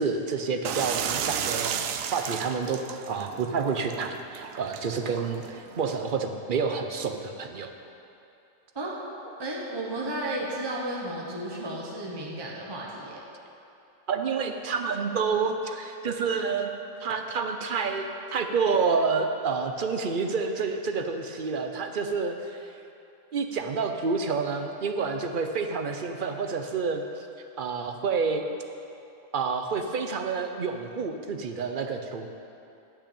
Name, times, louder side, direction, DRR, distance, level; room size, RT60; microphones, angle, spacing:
voice 1, 0.0-7.7 14.1-16.7 17.0-22.6 23.3-27.1 27.6-28.4 29.3-32.3, right 5 dB, 45° right, 5 dB, 0.8 m, -29 dB
sound 1, 0.6-6.1, right 8 dB, 90° right, 1.0 m, -34 dB
voice 2, 8.7-13.2, right 1 dB, 20° right, -3 dB, 1.2 m, -33 dB
10.5 x 6.0 x 8.6 m, 2.8 s
omnidirectional pair, 1.4 m